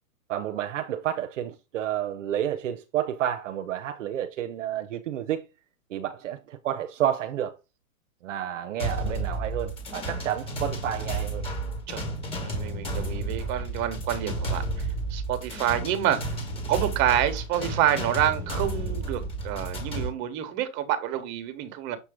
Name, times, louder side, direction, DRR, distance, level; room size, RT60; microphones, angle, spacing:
voice 1, 0.3-5.4 5.9-7.6 8.2-11.4, right 11 dB, 55° right, 0.8 m, -30 dB
sound 1, 8.8-20.1, right 2 dB, 10° left, 1.6 m, -32 dB
voice 2, 12.4-16.4 16.7-22.0, right 11 dB, 25° right, 1.2 m, -28 dB
6.9 x 3.1 x 5.0 m
hypercardioid pair, 150°, 45 cm